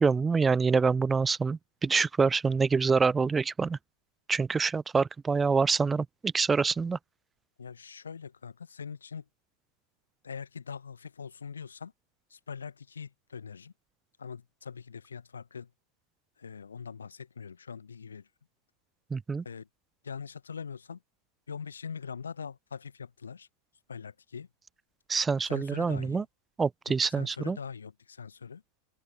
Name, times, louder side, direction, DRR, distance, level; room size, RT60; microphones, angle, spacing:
voice 1, 0.0-3.8 4.3-7.0 19.1-19.4 25.1-26.2 26.6-27.6, right 5 dB, 15° right, 0.5 m, -26 dB
voice 2, 7.6-9.2 10.2-11.9 12.3-13.7 14.2-15.7 16.4-18.3 19.4-19.7 20.0-21.0 21.5-23.5 23.9-24.5 25.4-26.3 27.2-28.6, left 6 dB, 70° left, 0.7 m, -42 dB
open air
figure-of-eight pair, 90°, 0 cm